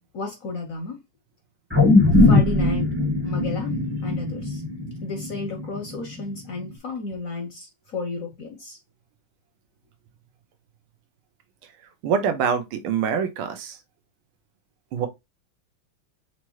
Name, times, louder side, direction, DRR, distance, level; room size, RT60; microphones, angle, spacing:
voice 1, 0.1-1.0 2.1-2.9 3.2-4.6 5.0-8.8, left 3 dB, 60° left, 0.9 m, -32 dB
sound 1, 1.7-6.2 6.6-6.7, left 2 dB, 10° right, 0.9 m, -20 dB
voice 2, 12.0-13.8 14.9-15.1, right 7 dB, 90° right, 1.7 m, -24 dB
5.9 x 2.9 x 3.0 m
omnidirectional pair, 2.2 m